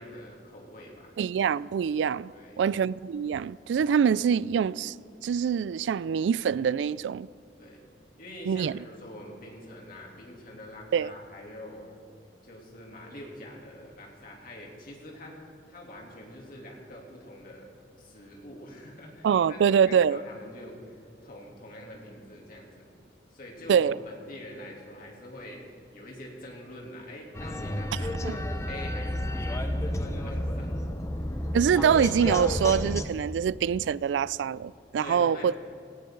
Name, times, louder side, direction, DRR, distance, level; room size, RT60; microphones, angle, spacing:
voice 1, 0.0-1.2 2.3-2.6 7.6-7.8 8.2-12.0 12.4-15.4 15.7-17.7 18.0-22.8 23.3-25.6 25.9-30.7 31.1-31.5 33.3-33.4 35.0-35.6, left 1 dB, 55° left, 3.0 m, -45 dB
voice 2, 1.2-2.3 2.6-5.0 5.2-7.3 8.5-8.7 10.9-11.1 19.2-20.2 23.7-24.0 28.2-28.4 31.5-35.5, right 7 dB, 85° right, 0.3 m, -24 dB
sound 1, 27.3-33.1, left 1 dB, 15° left, 0.8 m, -31 dB
17.5 x 17.5 x 3.9 m
head